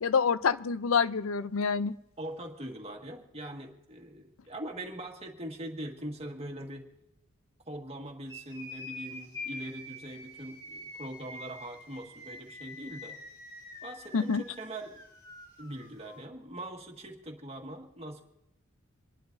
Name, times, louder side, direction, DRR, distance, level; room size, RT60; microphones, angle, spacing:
voice 1, 0.0-2.0 14.1-14.4, left 5 dB, 80° left, 15 dB, 0.5 m, -27 dB
voice 2, 2.2-6.9 7.7-13.2 13.8-15.0 15.6-18.2, right 1 dB, 30° right, 2 dB, 1.7 m, -42 dB
sound 1, 8.3-16.2, left 2 dB, 20° left, 2.1 m, -46 dB
27.0 x 11.0 x 2.6 m, 0.89 s
head